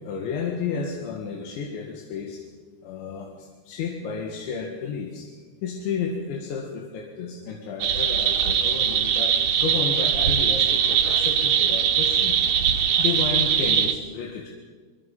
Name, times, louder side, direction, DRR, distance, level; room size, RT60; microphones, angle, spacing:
voice 1, 0.0-2.4 2.8-5.3 5.6-12.4 13.0-14.5, left 5 dB, 85° left, 0 dB, 4.2 m, -32 dB
sound 1, 7.8-13.9, right 8 dB, 65° right, 2.4 m, -21 dB
23.5 x 22.5 x 5.5 m, 1.5 s
omnidirectional pair, 5.1 m